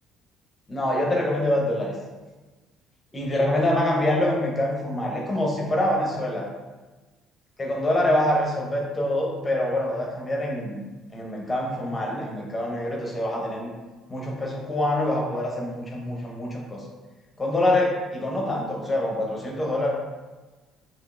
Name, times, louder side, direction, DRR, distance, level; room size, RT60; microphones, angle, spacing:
voice 1, 0.7-2.0 3.1-6.5 7.6-10.8 11.1-13.7 14.1-16.8 17.4-19.9, left 1 dB, 15° left, -2 dB, 0.7 m, -25 dB
5.0 x 2.8 x 2.5 m, 1.2 s
cardioid pair, 175°, 0 cm